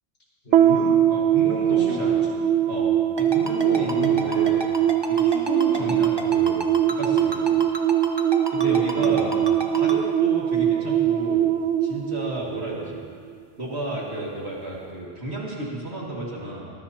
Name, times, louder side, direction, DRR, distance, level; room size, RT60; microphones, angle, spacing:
voice 1, 0.4-1.0 1.4-2.9 3.6-4.5 5.7-6.0 8.9-9.5, left 1 dB, 60° left, -6 dB, 5.9 m, -34 dB
sound 1, 0.5-13.0, right 10 dB, 90° right, 1.0 m, -22 dB
voice 2, 1.1-2.2 2.7-2.9 3.2-4.6 5.1-7.5 8.5-9.3 9.7-11.5 11.8-13.0 13.6-16.7, right 2 dB, 65° right, -4 dB, 2.5 m, -32 dB
Ringtone, 3.2-9.9, right 2 dB, 20° right, 1.2 m, -31 dB
24.0 x 20.0 x 2.9 m, 2.1 s
omnidirectional pair, 1.2 m